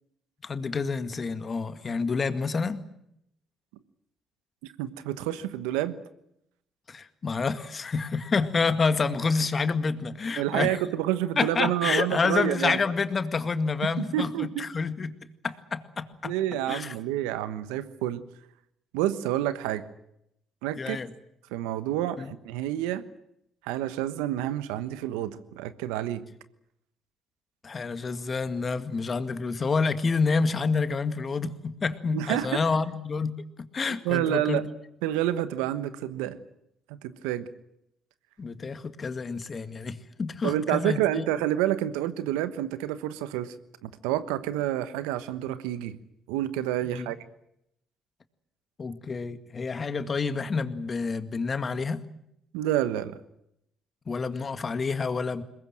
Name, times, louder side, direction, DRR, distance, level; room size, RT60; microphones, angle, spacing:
voice 1, 0.4-2.8 6.9-10.8 11.4-15.1 15.4-16.3 16.7-16.9 20.8-21.1 22.2-22.3 27.6-33.3 33.6-34.6 38.4-41.2 46.9-47.1 48.8-52.0 54.1-55.4, left 4 dB, 40° left, 10 dB, 2.0 m, -28 dB
voice 2, 4.6-6.0 10.4-12.8 13.8-14.6 16.2-18.2 18.9-19.9 20.6-21.0 21.5-23.1 23.6-26.3 32.1-32.7 34.0-34.7 35.0-36.4 36.9-37.5 40.4-43.5 43.8-46.0 46.3-47.2 52.5-53.2, right 12 dB, 90° right, 13 dB, 1.2 m, -29 dB
22.5 x 20.5 x 9.1 m, 0.78 s
supercardioid pair, 60°, 0 cm